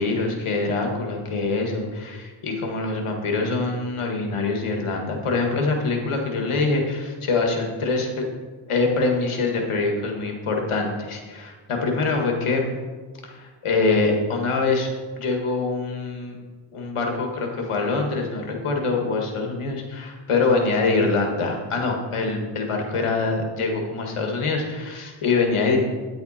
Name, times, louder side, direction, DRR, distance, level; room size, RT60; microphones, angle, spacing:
voice 1, 0.0-8.2 8.7-12.7 13.2-14.9 15.2-16.4 16.7-25.8, left 3 dB, 85° left, 2 dB, 1.9 m, -24 dB
10.0 x 7.9 x 4.3 m, 1.4 s
cardioid pair, 90°, 49 cm